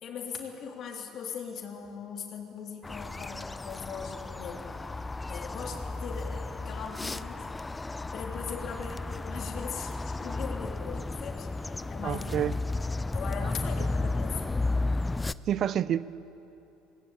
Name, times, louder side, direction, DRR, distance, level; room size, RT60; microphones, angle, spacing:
voice 1, 0.0-7.5 8.1-12.4 13.1-14.6, left 6 dB, 55° left, 3.5 m, -40 dB
sound 1, 2.8-15.3, left 2 dB, 15° left, 0.6 m, -33 dB
voice 2, 12.0-12.6 13.8-13.9 15.5-16.0, right 10 dB, 50° right, 0.6 m, -28 dB
21.0 x 19.5 x 8.8 m
supercardioid pair, 85°, 0 cm